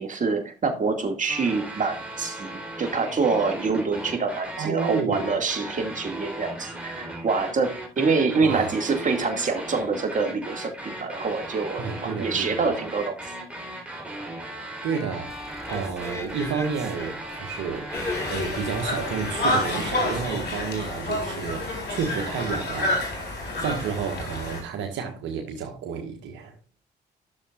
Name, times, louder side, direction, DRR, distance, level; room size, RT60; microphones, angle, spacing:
voice 1, 0.0-13.3, right 4 dB, 40° right, 2.1 m, -26 dB
sound 1, 1.3-20.2, right 1 dB, 5° right, 3.9 m, -37 dB
voice 2, 4.6-5.4 8.4-8.7 11.8-12.7 14.8-17.9 18.3-23.3 23.6-26.6, right 6 dB, 75° right, 1.5 m, -31 dB
sound 2, 15.3-21.2, left 1 dB, 15° left, 2.1 m, -40 dB
Conversation, 17.9-24.6, left 1 dB, 60° left, 3.8 m, -29 dB
12.5 x 6.9 x 2.4 m
supercardioid pair, 55°, 19 cm